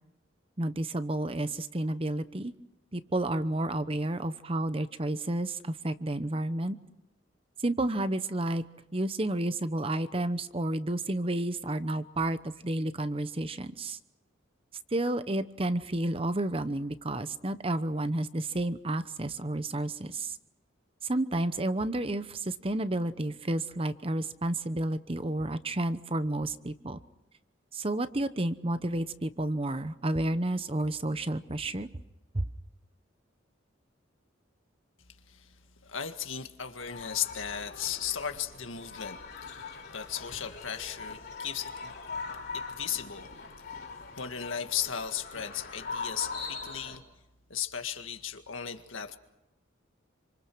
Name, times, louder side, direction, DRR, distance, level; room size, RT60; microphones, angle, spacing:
voice 1, 0.6-2.5 2.9-6.8 7.6-8.6 8.9-14.0 14.9-20.3 21.0-27.0 27.7-31.9 32.3-32.5, right 1 dB, 30° right, 12 dB, 0.9 m, -31 dB
voice 2, 35.8-41.9 42.5-43.3 43.7-43.9 44.2-47.0 47.5-49.2, left 8 dB, 90° left, 7 dB, 1.9 m, -36 dB
sound 1, 36.8-47.0, left 4 dB, 55° left, 3.4 m, -41 dB
27.5 x 26.0 x 6.3 m, 0.92 s
head